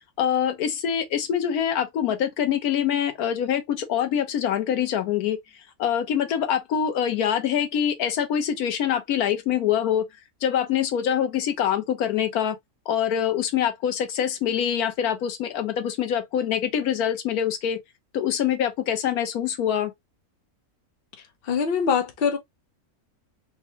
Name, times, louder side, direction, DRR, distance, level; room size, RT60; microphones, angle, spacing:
voice 1, 0.2-5.4 5.8-10.0 10.4-12.6 12.9-17.8 18.1-19.9, left 9 dB, 80° left, 1.2 m, -24 dB
voice 2, 21.4-22.4, left 6 dB, 45° left, 0.8 m, -23 dB
4.3 x 2.3 x 2.7 m
omnidirectional pair, 1.6 m